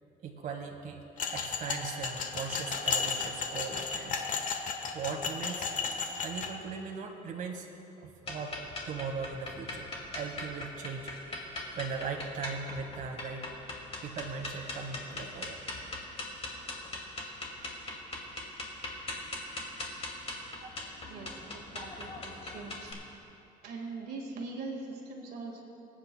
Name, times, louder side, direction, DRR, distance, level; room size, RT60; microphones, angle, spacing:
voice 1, 0.2-1.0 1.3-4.2 4.9-5.7 6.2-7.7 8.0-8.6 8.9-13.5 14.0-15.6 20.6-20.7, right 5 dB, 55° right, 3 dB, 1.2 m, -39 dB
sound 1, 1.2-6.5, left 5 dB, 50° left, 1.2 m, -34 dB
sound 2, 8.2-22.9, left 2 dB, 35° left, 2.3 m, -40 dB
voice 2, 21.1-22.9 23.6-25.6, right 3 dB, 70° right, 0 dB, 1.8 m, -42 dB
26.5 x 8.9 x 2.2 m, 2.7 s
cardioid pair, 110°, 17 cm